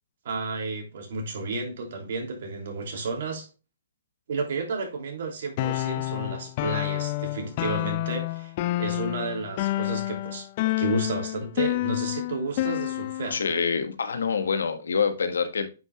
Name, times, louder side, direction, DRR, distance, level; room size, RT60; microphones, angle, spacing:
voice 1, 0.2-3.5 4.3-10.5 10.8-13.4, right 3 dB, 65° right, 2.9 m, -32 dB
sound 1, 5.6-13.4, left 17 dB, 45° left, 0.4 m, -29 dB
voice 2, 13.3-15.7, left 5 dB, 80° left, 1.3 m, -26 dB
9.3 x 5.4 x 2.4 m
hypercardioid pair, 135°, 0 cm